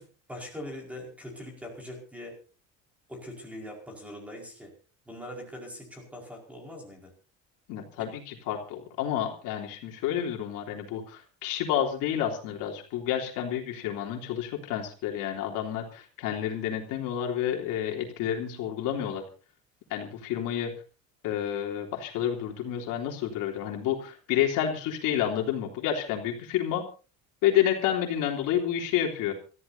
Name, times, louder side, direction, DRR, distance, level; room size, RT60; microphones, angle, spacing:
voice 1, 0.0-2.4 3.1-4.7 5.0-7.1 7.9-8.1, left 1 dB, 5° right, 1 dB, 4.9 m, -42 dB
voice 2, 7.7-19.2 19.9-20.7 21.2-26.8 27.4-29.3, left 10 dB, 60° left, 2 dB, 3.3 m, -29 dB
27.0 x 14.5 x 2.8 m, 0.36 s
cardioid pair, 165°, 35 cm